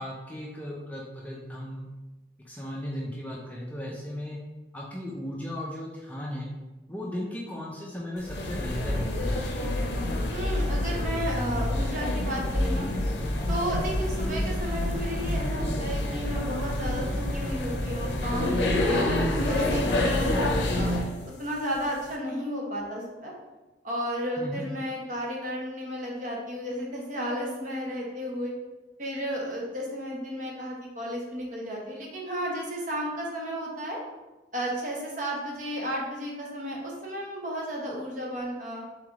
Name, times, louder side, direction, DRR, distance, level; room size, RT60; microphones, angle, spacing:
voice 1, 0.0-1.9 2.4-4.4 4.7-6.5 6.9-9.3 24.4-24.7, left 1 dB, 10° left, -3 dB, 0.5 m, -36 dB
sound 1, 8.2-21.1, left 1 dB, 65° left, 0.6 m, -27 dB
voice 2, 10.3-12.9 13.5-19.1 19.5-21.0 21.4-23.3 23.8-28.5 29.0-34.0 34.5-38.8, equal, 45° right, -2 dB, 0.9 m, -33 dB
3.8 x 3.4 x 3.5 m, 1.1 s
head